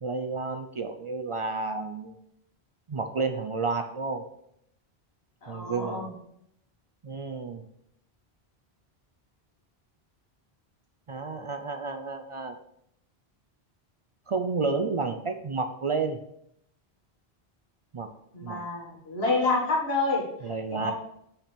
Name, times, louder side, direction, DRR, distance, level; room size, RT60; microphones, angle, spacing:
voice 1, 0.0-2.1 2.9-4.2 5.5-6.1 7.0-7.6 11.1-12.5 14.3-16.2 17.9-18.1 18.4-18.6 20.4-20.9, right 4 dB, 60° right, 7 dB, 0.3 m, -31 dB
voice 2, 5.4-6.1 18.3-20.2 20.7-20.9, left 3 dB, 70° left, -2 dB, 2.0 m, -28 dB
5.6 x 4.4 x 5.1 m, 0.75 s
omnidirectional pair, 1.1 m